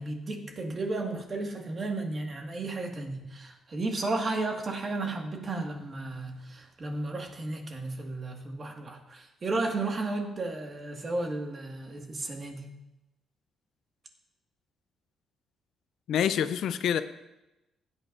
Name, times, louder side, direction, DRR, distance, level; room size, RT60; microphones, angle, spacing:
voice 1, 0.0-12.7, right 2 dB, 40° right, 2 dB, 1.8 m, -33 dB
voice 2, 16.1-17.0, left 9 dB, 75° left, 12 dB, 0.5 m, -26 dB
16.0 x 8.8 x 2.6 m, 0.95 s
cardioid pair, 90°, 0 cm